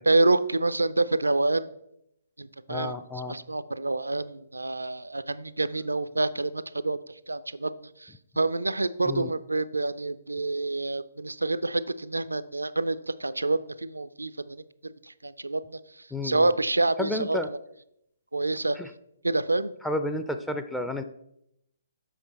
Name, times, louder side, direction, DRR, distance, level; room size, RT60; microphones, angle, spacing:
voice 1, 0.1-1.7 2.4-2.9 3.3-7.0 7.3-7.7 8.0-17.4 18.3-18.8 19.2-19.7, right 2 dB, 80° right, 14 dB, 0.4 m, -27 dB
voice 2, 2.7-3.4 9.1-9.3 16.1-16.5 17.0-17.5 18.7-18.9 19.8-21.0, left 2 dB, 5° left, 7 dB, 0.4 m, -31 dB
7.4 x 5.5 x 4.1 m, 0.78 s
figure-of-eight pair, 130°, 0 cm